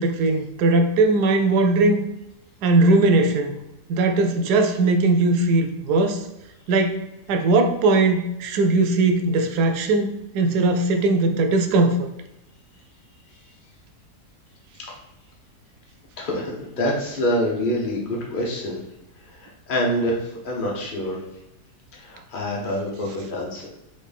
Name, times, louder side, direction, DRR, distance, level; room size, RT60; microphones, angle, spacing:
voice 1, 0.0-2.0 2.6-3.5 3.9-6.3 6.7-7.0 7.3-12.1, right 2 dB, 80° right, 6 dB, 1.2 m, -19 dB
voice 2, 16.2-18.8 19.4-20.2 20.4-21.2 22.0-23.7, equal, 35° left, -2 dB, 1.1 m, -26 dB
3.9 x 3.8 x 3.5 m, 0.88 s
omnidirectional pair, 1.7 m